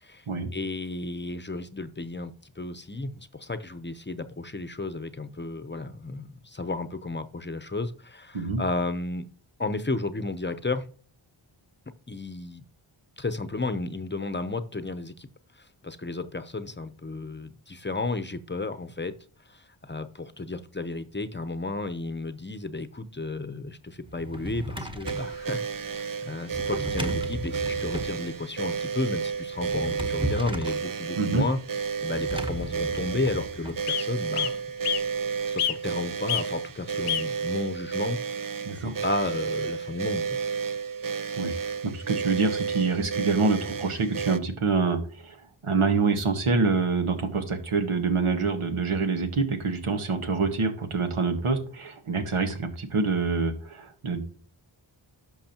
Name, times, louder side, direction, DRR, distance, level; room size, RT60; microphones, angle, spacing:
voice 1, 0.5-9.3 9.6-10.9 12.1-12.6 13.2-15.3 15.8-19.1 19.5-31.6 32.0-34.6 35.4-38.2 39.0-40.4, left 3 dB, 20° left, 0.7 m, -33 dB
Drawer open or close, 24.0-25.4 26.5-28.2 29.5-30.8 32.1-33.8, equal, 10° right, 1.1 m, -35 dB
sound 1, 24.4-25.3 26.5-26.6 26.8-26.9 27.6-27.9 28.2-28.3 28.6-28.8 29.1-29.4 30.3-30.4 30.8-30.9 32.0-32.1 32.3-32.8 33.3-33.4 33.9-34.1 34.3-35.1 35.6-36.0 36.3-36.5 37.1-37.3 38.0-38.1, left 10 dB, 85° left, 0.7 m, -30 dB
sound 2, 25.0-44.4, right 6 dB, 45° right, 0.6 m, -32 dB
voice 2, 41.8-45.4 45.6-54.2, right 4 dB, 90° right, 1.5 m, -26 dB
11.5 x 6.2 x 2.9 m
wide cardioid pair, 65°, 49 cm